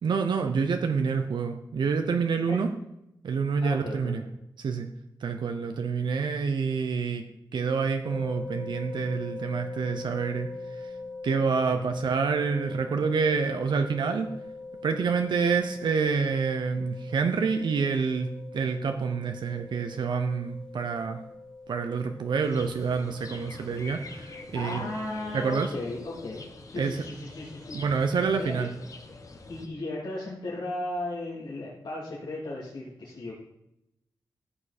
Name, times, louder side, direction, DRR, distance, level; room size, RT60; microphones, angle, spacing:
voice 1, 0.0-2.7 3.2-4.2 4.6-4.9 5.2-7.2 7.5-10.5 10.8-10.9 11.2-14.3 14.8-21.2 21.7-24.9 25.3-25.7 26.8-27.0 27.7-28.7, right 5 dB, 80° right, 6 dB, 0.9 m, -27 dB
voice 2, 3.6-4.1 11.6-12.0 24.5-27.7 28.4-28.7 29.5-33.3, left 2 dB, 75° left, -6 dB, 3.1 m, -36 dB
sound 1, 8.0-26.5, left 3 dB, 10° left, 1.1 m, -42 dB
sound 2, 22.4-29.7, left 3 dB, 45° left, 1.4 m, -46 dB
14.0 x 7.2 x 4.4 m, 0.84 s
wide cardioid pair, 125°, 8 cm